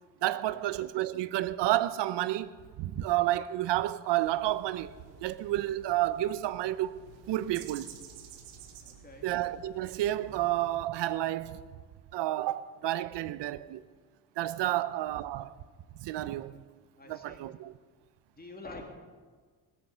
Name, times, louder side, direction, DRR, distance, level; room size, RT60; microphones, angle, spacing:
voice 1, 0.2-4.9 5.2-7.0 7.3-8.0 9.2-11.6 12.1-13.8 14.4-15.5 16.0-16.6 17.1-17.7, right 14 dB, 65° right, 0.7 m, -30 dB
sound 1, 4.2-10.8, right 7 dB, 90° right, 1.4 m, -51 dB
voice 2, 8.8-9.3 14.7-14.8 17.0-17.4 18.4-18.9, left 2 dB, 20° left, 2.7 m, -47 dB
19.5 x 8.3 x 5.6 m
supercardioid pair, 70°, 45 cm